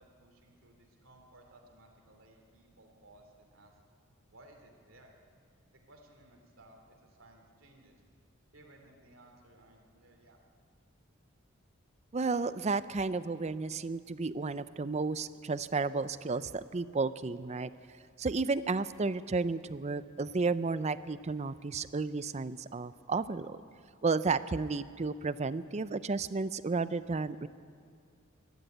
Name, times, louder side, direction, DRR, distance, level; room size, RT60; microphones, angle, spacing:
voice 1, 0.0-3.7 4.3-5.1 5.8-8.0 8.5-10.4, right 1 dB, 75° right, 2 dB, 3.0 m, -59 dB
voice 2, 12.1-17.7 18.2-23.6 24.0-27.5, right 4 dB, 35° right, 15 dB, 0.5 m, -32 dB
23.5 x 12.0 x 9.2 m, 2.2 s
head